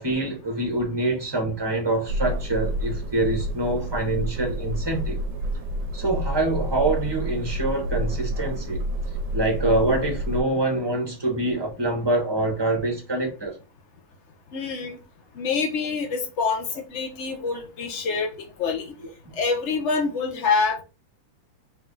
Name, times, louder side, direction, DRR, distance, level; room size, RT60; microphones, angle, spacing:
voice 1, 0.0-5.2 5.9-8.8 9.3-13.6, right 2 dB, 20° right, 0.7 m, -25 dB
sound 1, 2.1-10.4, equal, 70° right, 1.2 m, -29 dB
voice 2, 14.5-15.0 15.3-18.9 19.3-20.8, left 4 dB, 80° left, 0.6 m, -26 dB
3.5 x 3.3 x 3.8 m
omnidirectional pair, 2.3 m